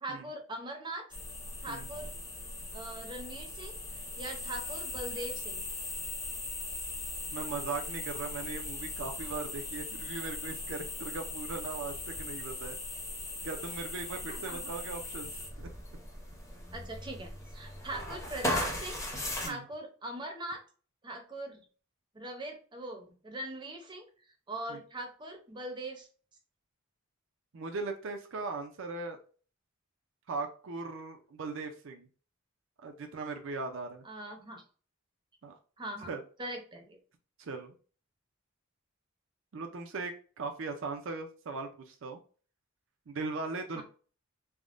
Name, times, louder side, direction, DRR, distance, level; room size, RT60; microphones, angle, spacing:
voice 1, 0.0-1.1 1.6-2.1 2.7-5.7 14.3-14.6 16.7-19.0 19.4-20.6 21.0-21.6 22.1-24.0 24.5-26.1 34.0-34.6 35.8-36.1 36.4-37.0 43.7-43.8, right 1 dB, 20° right, 3 dB, 0.6 m, -41 dB
sound 1, 1.1-19.5, left 1 dB, 15° left, 0.7 m, -39 dB
voice 2, 7.3-12.8 13.4-15.7 19.4-19.6 24.7-24.8 27.5-29.2 30.3-32.1 32.8-34.0 35.4-35.6 36.0-36.2 37.4-37.8 39.5-42.2 43.1-43.8, right 3 dB, 65° right, 4 dB, 0.5 m, -39 dB
3.4 x 2.1 x 2.5 m, 0.40 s
head